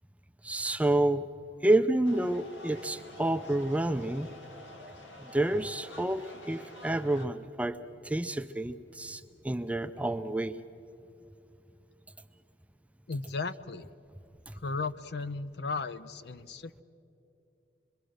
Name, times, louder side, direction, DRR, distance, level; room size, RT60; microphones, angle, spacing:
voice 1, 0.4-1.3 1.6-4.3 5.2-7.8 8.0-10.5 14.5-14.6, right 1 dB, 5° right, 9 dB, 0.4 m, -29 dB
sound 1, 2.0-7.3, left 1 dB, 90° left, 2.0 m, -48 dB
voice 2, 13.1-13.9 14.5-16.8, left 4 dB, 60° left, 13 dB, 0.6 m, -35 dB
26.0 x 22.5 x 6.4 m, 2.8 s
head